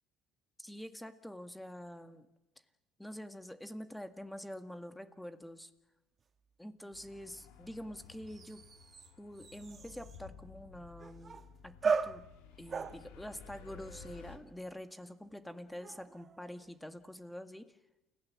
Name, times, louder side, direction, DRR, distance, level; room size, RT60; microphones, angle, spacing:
voice 1, 0.6-2.3 3.0-5.7 6.6-8.6 9.2-12.2 12.6-17.7, equal, 5° left, 8 dB, 1.8 m, -46 dB
sound 1, 6.2-6.3 8.3-10.2 11.0-11.6 11.8-14.5 15.5-16.8, right 5 dB, 35° right, 1.3 m, -39 dB
sound 2, 6.9-14.4, left 7 dB, 85° left, 2.6 m, -55 dB
29.0 x 16.5 x 7.4 m, 0.98 s
supercardioid pair, 85°, 0 cm